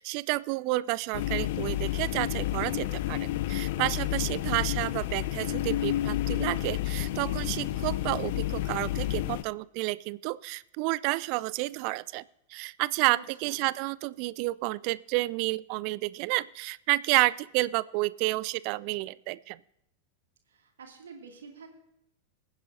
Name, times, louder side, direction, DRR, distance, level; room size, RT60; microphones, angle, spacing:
voice 1, 0.0-12.2 12.5-19.6, right 21 dB, 45° right, 20 dB, 0.3 m, -30 dB
sound 1, 1.1-9.4, left 15 dB, 50° left, 0.5 m, -30 dB
voice 2, 13.0-13.7 20.5-21.7, right 5 dB, 65° right, 3 dB, 2.3 m, -49 dB
22.5 x 9.7 x 2.7 m, 0.82 s
figure-of-eight pair, 90°, 0 cm